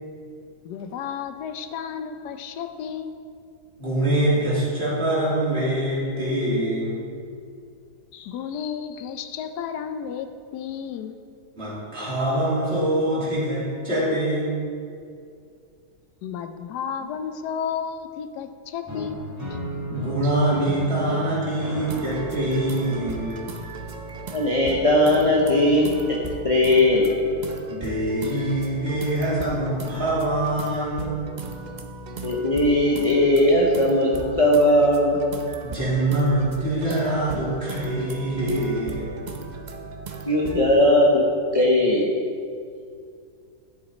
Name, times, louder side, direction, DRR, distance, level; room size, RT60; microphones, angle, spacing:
voice 1, 0.6-3.1 8.1-10.3 10.5-11.2 16.2-19.2 19.5-19.6, left 7 dB, 85° left, 8 dB, 1.2 m, -32 dB
voice 2, 3.8-7.0 11.6-14.6 19.9-23.5 27.7-31.4 35.6-39.2, right 1 dB, 40° right, -8 dB, 2.8 m, -24 dB
sound 1, 18.9-24.8, equal, 15° right, 2.2 m, -36 dB
sound 2, 21.8-40.7, right 4 dB, 80° right, 0.4 m, -37 dB
voice 3, 24.2-26.2 26.4-27.2 32.2-35.2 40.3-41.3 41.5-42.1, left 1 dB, 30° left, -2 dB, 0.7 m, -19 dB
11.0 x 6.6 x 4.1 m, 2.3 s
omnidirectional pair, 1.7 m